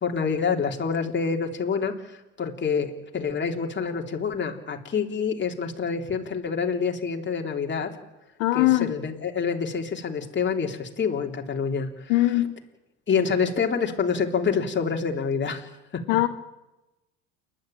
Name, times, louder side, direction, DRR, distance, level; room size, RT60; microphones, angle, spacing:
voice 1, 0.0-7.9 8.5-12.1 13.1-15.7, left 6 dB, 30° left, 2 dB, 3.2 m, -27 dB
voice 2, 8.4-8.9 12.1-12.5 16.1-16.3, left 17 dB, 75° left, 8 dB, 1.3 m, -21 dB
29.0 x 11.5 x 8.9 m, 1.0 s
hypercardioid pair, 80°, 37 cm